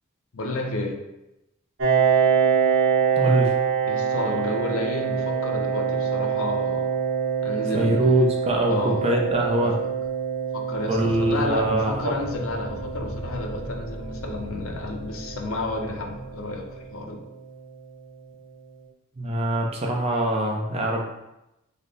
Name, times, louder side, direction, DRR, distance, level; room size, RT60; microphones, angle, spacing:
voice 1, 0.3-1.0 3.9-6.9 7.4-8.3 8.7-9.1 9.6-9.7 10.5-17.2, left 2 dB, 80° left, 2 dB, 0.6 m, -31 dB
Piano, 1.8-17.1, right 7 dB, 65° right, 0.9 m, -26 dB
voice 2, 3.2-3.5 7.7-9.7 10.9-11.9 19.2-21.0, right 1 dB, 30° right, 0 dB, 0.5 m, -23 dB
sound 1, 10.7-17.2, left 1 dB, 25° left, 0.8 m, -39 dB
3.4 x 2.1 x 3.9 m, 0.92 s
head